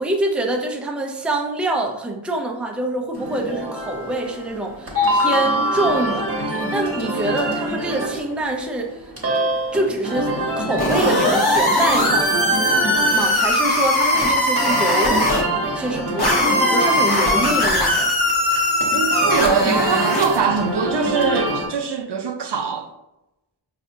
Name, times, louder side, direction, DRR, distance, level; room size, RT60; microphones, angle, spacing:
voice 1, 0.0-9.0 9.7-10.3 10.6-12.6 13.1-15.2 15.7-18.1, right 2 dB, ahead, 0.4 m, -25 dB
sound 1, 3.1-21.7, right 1 dB, 30° right, 1.0 m, -25 dB
sound 2, 10.8-15.4 16.2-20.4, left 1 dB, 50° left, 0.9 m, -19 dB
voice 2, 18.9-22.9, right 5 dB, 60° right, 0.5 m, -22 dB
4.7 x 2.5 x 2.6 m
wide cardioid pair, 60°, 48 cm